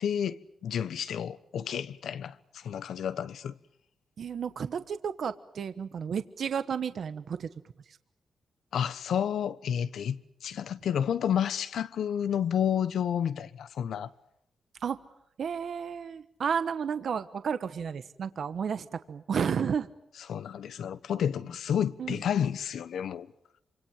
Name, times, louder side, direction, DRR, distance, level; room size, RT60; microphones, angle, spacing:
voice 1, 0.0-3.5 8.7-14.1 20.3-23.3, left 9 dB, 85° left, 1.2 m, -30 dB
voice 2, 4.2-7.5 7.9-8.0 14.8-15.0 15.4-19.9 22.0-22.2, right 7 dB, 60° right, 1.2 m, -32 dB
28.0 x 26.0 x 7.4 m
wide cardioid pair, 145°, 0 cm